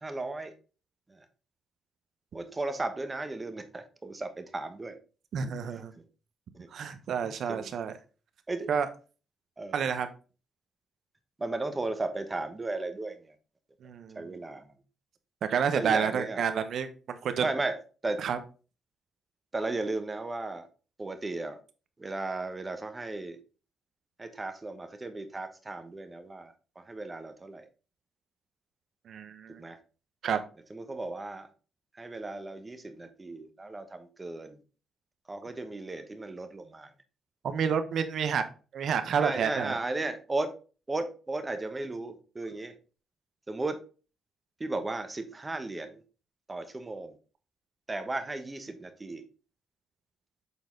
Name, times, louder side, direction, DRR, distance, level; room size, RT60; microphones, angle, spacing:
voice 1, 0.0-0.5 2.3-5.0 6.5-6.7 7.2-7.7 8.5-8.7 9.6-9.8 11.4-13.2 14.2-14.6 15.7-16.4 17.4-17.7 18.0-18.2 19.5-20.7 21.0-21.6 22.0-23.4 24.2-26.5 26.9-27.6 29.6-29.8 30.7-31.5 32.0-34.6 35.3-36.9 39.2-40.5 40.9-42.7 43.5-43.8 44.6-46.0 46.5-47.1 47.9-49.2, right 2 dB, 20° right, 8 dB, 1.1 m, -35 dB
voice 2, 5.3-5.9 6.7-8.0 8.7-8.9 9.7-10.1 13.8-14.4 15.4-17.5 18.2-18.4 29.1-29.6 30.2-30.4 37.4-38.4 38.7-39.8, right 7 dB, 65° right, 10 dB, 0.9 m, -29 dB
7.3 x 4.0 x 3.8 m, 0.36 s
cardioid pair, 90°, 0 cm